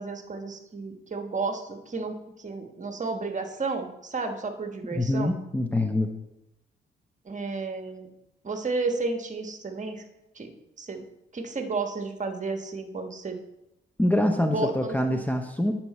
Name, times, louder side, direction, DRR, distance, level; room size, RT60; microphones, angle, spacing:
voice 1, 0.0-5.4 7.2-8.1 8.4-10.0 10.3-10.5 10.8-11.0 11.3-13.4 14.5-15.2, right 3 dB, 35° right, 5 dB, 1.3 m, -32 dB
voice 2, 4.9-6.1 14.0-15.7, left 1 dB, 10° left, 4 dB, 0.8 m, -25 dB
9.4 x 5.9 x 4.2 m, 0.90 s
cardioid pair, 65°, 21 cm